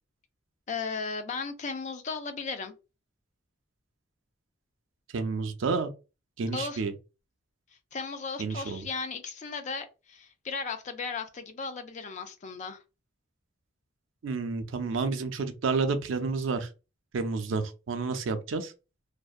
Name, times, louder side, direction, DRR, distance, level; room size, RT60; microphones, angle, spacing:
voice 1, 0.7-2.7 6.5-6.8 7.9-12.8, left 4 dB, 35° left, 0.3 m, -36 dB
voice 2, 5.1-5.9 6.4-6.9 8.4-8.9 14.2-16.7 17.1-18.7, right 4 dB, 70° right, 0.4 m, -30 dB
2.6 x 2.1 x 2.3 m
head